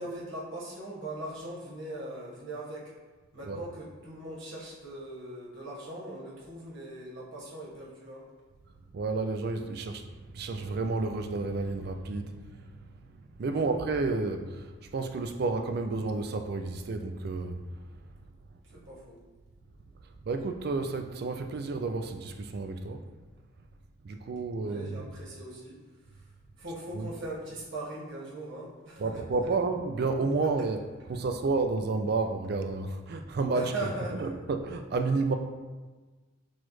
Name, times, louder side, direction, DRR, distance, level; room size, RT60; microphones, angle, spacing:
voice 1, 0.0-2.9 3.3-8.2 13.5-13.7 18.7-19.2 24.1-24.2 24.5-25.8 26.6-29.5 33.5-34.3, right 1 dB, 70° right, -6 dB, 1.3 m, -40 dB
voice 2, 8.9-13.1 13.4-17.8 20.0-23.0 24.0-25.1 26.7-27.1 29.0-35.4, right 3 dB, 50° right, 6 dB, 0.3 m, -31 dB
6.0 x 2.4 x 3.1 m, 1.3 s
head